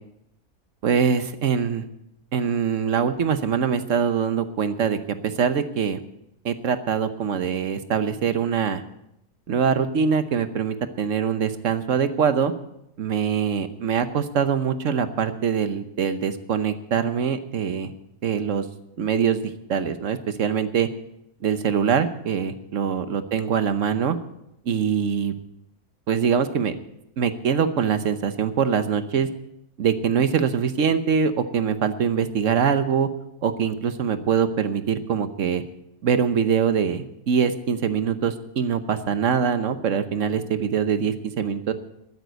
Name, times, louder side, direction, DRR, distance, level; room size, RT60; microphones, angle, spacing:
voice 1, 0.8-1.8 2.3-5.0 5.2-6.0 6.4-8.8 9.5-12.5 13.0-17.9 18.2-18.6 19.0-19.4 19.7-20.9 21.4-24.2 24.7-25.3 26.1-26.7 27.2-29.3 29.8-33.1 33.4-35.6 36.0-41.7, right 7 dB, 55° right, 11 dB, 1.1 m, -23 dB
13.0 x 9.4 x 7.8 m, 0.81 s
omnidirectional pair, 1.8 m